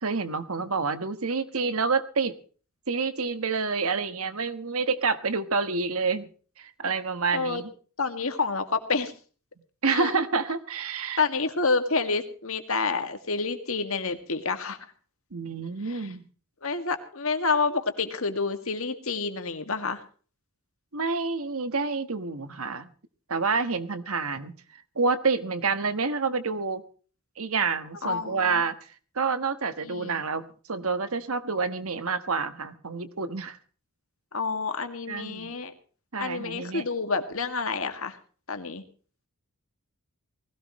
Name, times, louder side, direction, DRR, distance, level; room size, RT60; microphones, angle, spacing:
voice 1, 0.0-2.4 2.9-6.3 6.6-7.7 9.8-11.2 15.3-16.3 20.9-22.9 23.3-24.6 24.9-26.8 27.4-28.8 29.1-33.6 35.1-35.5 36.1-36.8, right 4 dB, 75° right, 11 dB, 1.4 m, -28 dB
voice 2, 8.0-9.1 9.8-10.1 11.2-14.8 15.9-16.1 16.6-20.0 28.0-28.6 29.8-30.1 34.3-35.7 36.2-38.2 38.5-38.8, left 4 dB, 70° left, 7 dB, 2.1 m, -28 dB
20.0 x 16.5 x 3.1 m, 0.40 s
head